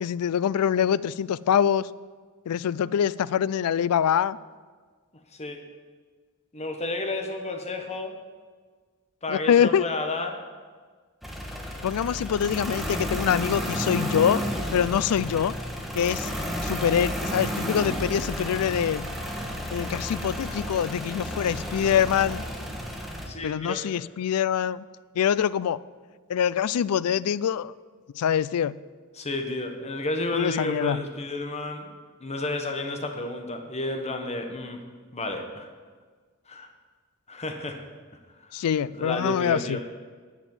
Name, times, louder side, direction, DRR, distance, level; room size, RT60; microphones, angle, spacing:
voice 1, 0.0-1.9 2.5-4.4 9.3-9.8 11.8-14.4 14.7-15.5 15.9-16.3 16.6-19.1 19.7-22.4 23.4-24.8 25.2-25.8 26.3-27.7 28.1-28.8 30.3-31.0 38.5-39.8, left 8 dB, 85° left, 19 dB, 0.4 m, -24 dB
voice 2, 6.5-8.1 9.2-10.4 23.2-23.8 29.1-31.9 32.2-34.8 35.1-35.7 36.5-36.7 37.3-37.8 38.4-38.6 38.9-39.8, left 2 dB, 30° left, 4 dB, 1.3 m, -31 dB
sound 1, 11.2-23.3, equal, ahead, 1.3 m, -32 dB
11.0 x 7.1 x 7.2 m, 1.5 s
head